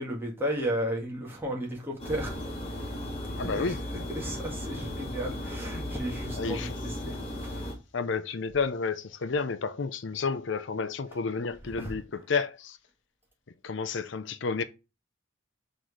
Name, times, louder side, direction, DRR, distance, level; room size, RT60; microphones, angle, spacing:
voice 1, 0.0-2.4 2.7-2.9 3.4-3.7 4.1-6.7 7.0-7.7 11.8-11.9, equal, 10° right, 1.7 m, -34 dB
sound 1, 2.0-7.7, left 1 dB, 30° left, 2.5 m, -36 dB
voice 2, 3.4-3.8 6.4-6.8 7.9-12.8 13.6-14.6, left 4 dB, 65° left, 0.6 m, -31 dB
6.1 x 3.9 x 4.7 m
head